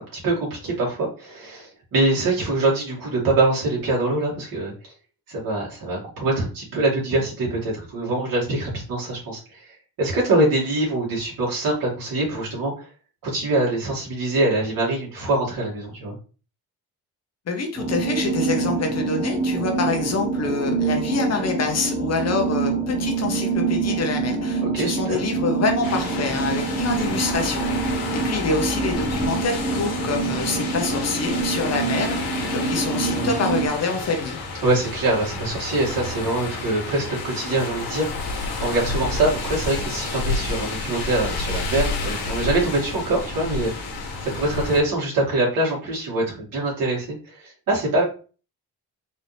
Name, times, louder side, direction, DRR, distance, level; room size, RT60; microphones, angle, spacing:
voice 1, 0.0-4.9 5.3-12.9 13.2-16.2 24.6-25.2 33.1-33.3 34.6-43.9 44.2-48.0, right 2 dB, 60° right, -4 dB, 2.1 m, -24 dB
voice 2, 17.5-27.6 28.1-34.4 39.0-39.1, left 4 dB, 45° left, 4 dB, 0.8 m, -26 dB
sound 1, 17.8-33.7, right 4 dB, 15° right, 0.5 m, -26 dB
sound 2, 25.8-44.8, left 3 dB, 80° left, 1.3 m, -30 dB
4.1 x 2.7 x 3.2 m, 0.36 s
cardioid pair, 150°, 38 cm